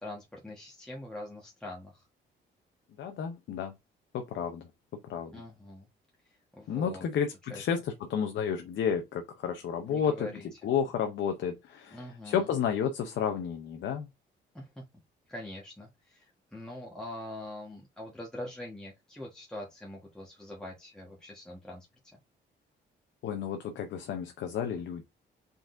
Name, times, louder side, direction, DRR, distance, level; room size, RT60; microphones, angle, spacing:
voice 1, 0.0-2.0 5.3-5.9 6.5-7.0 7.5-7.6 9.9-10.5 11.9-12.5 14.5-14.8 15.3-16.3 16.5-21.9, left 1 dB, 5° left, 1.3 m, -43 dB
voice 2, 3.0-3.7 4.1-4.7 5.1-5.3 6.7-14.1 23.2-25.0, left 7 dB, 70° left, 0.7 m, -31 dB
4.8 x 3.9 x 2.6 m
cardioid pair, 90°, 20 cm